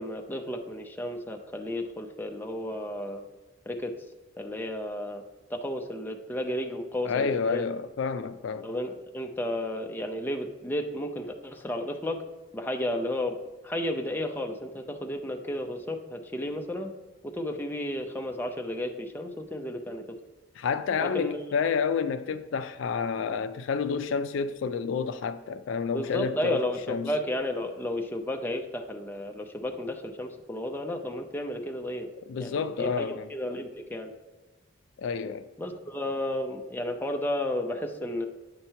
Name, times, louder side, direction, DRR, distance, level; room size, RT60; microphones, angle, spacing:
voice 1, 0.0-3.2 3.7-3.9 4.4-5.2 5.5-7.7 8.6-12.2 12.5-13.4 13.6-16.9 17.2-20.0 21.0-21.4 25.9-32.1 32.4-34.1 35.6-38.3, left 1 dB, 10° left, 0.5 m, -33 dB
voice 2, 7.0-8.7 20.6-26.6 26.9-27.1 32.3-33.3 35.0-35.5, left 6 dB, 75° left, 0.3 m, -29 dB
8.7 x 3.0 x 5.6 m
head